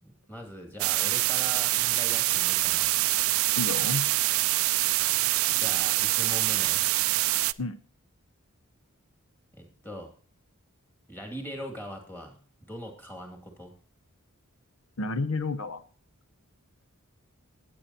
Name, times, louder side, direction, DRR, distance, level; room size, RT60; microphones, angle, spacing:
voice 1, 0.0-2.9 5.5-6.8 9.5-10.1 11.1-12.4 12.7-13.7, equal, 10° left, 2 dB, 2.5 m, -41 dB
sound 1, 0.8-7.5, right 18 dB, 70° right, 0.4 m, -25 dB
voice 2, 3.6-4.1 7.6-7.8 15.0-15.8, left 3 dB, 65° left, 11 dB, 0.7 m, -30 dB
18.0 x 8.6 x 2.9 m, 0.41 s
head